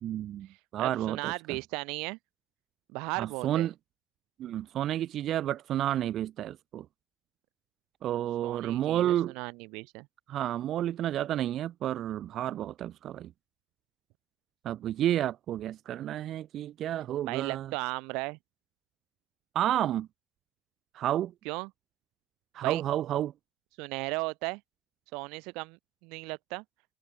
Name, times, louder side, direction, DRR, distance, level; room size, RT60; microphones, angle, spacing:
voice 1, 0.0-0.5 0.7-1.6 3.2-3.7 4.4-6.9 8.0-9.3 10.3-13.3 14.6-17.7 19.5-20.1 20.9-21.3 22.5-23.3, right 12 dB, 55° right, 0.7 m, -30 dB
voice 2, 0.8-2.2 2.9-3.7 8.4-10.1 17.2-18.4 21.4-21.7 22.6-22.8 23.8-24.6 25.1-26.6, right 27 dB, 80° right, 1.1 m, -36 dB
cardioid pair, 115°, 0 cm